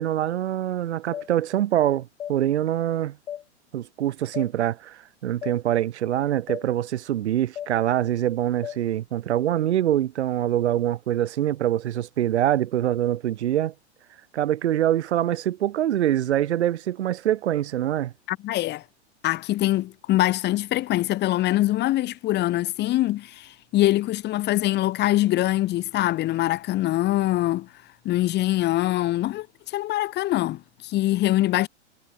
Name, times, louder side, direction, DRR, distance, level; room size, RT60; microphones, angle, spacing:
voice 1, 0.0-3.2 3.7-13.7 14.3-18.1, right 12 dB, 70° right, 1.3 m, -24 dB
sound 1, 1.1-1.3 2.2-2.4 3.3-3.4 4.3-4.5 5.4-5.6 6.5-6.6 7.6-7.7 8.6-8.8, left 10 dB, 70° left, 3.1 m, -34 dB
voice 2, 18.3-18.8 19.2-27.7 28.0-31.7, left 15 dB, 30° left, 1.6 m, -23 dB
hypercardioid pair, 115°, 35 cm